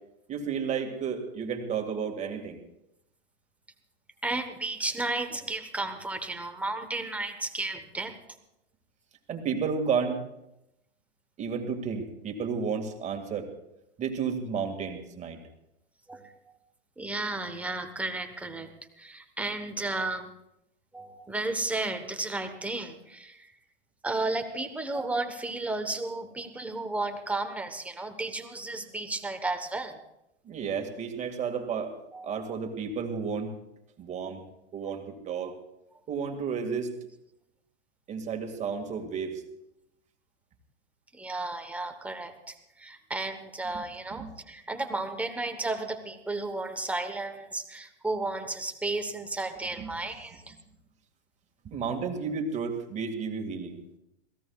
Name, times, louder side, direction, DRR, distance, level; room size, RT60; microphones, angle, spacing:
voice 1, 0.3-2.6 9.3-10.2 11.4-13.5 14.0-15.4 30.4-32.0 32.2-33.5 34.0-34.4 34.7-35.6 36.1-36.9 38.1-39.4 43.7-43.8 44.1-44.3 49.8-49.9 51.6-54.0, right 6 dB, 20° right, 3 dB, 2.0 m, -32 dB
voice 2, 4.2-8.2 16.1-16.3 17.0-18.7 19.0-20.3 20.9-23.5 24.0-30.0 32.1-32.4 41.1-50.5, right 2 dB, 5° right, 6 dB, 1.1 m, -33 dB
27.5 x 17.5 x 2.4 m, 0.86 s
supercardioid pair, 145°, 33 cm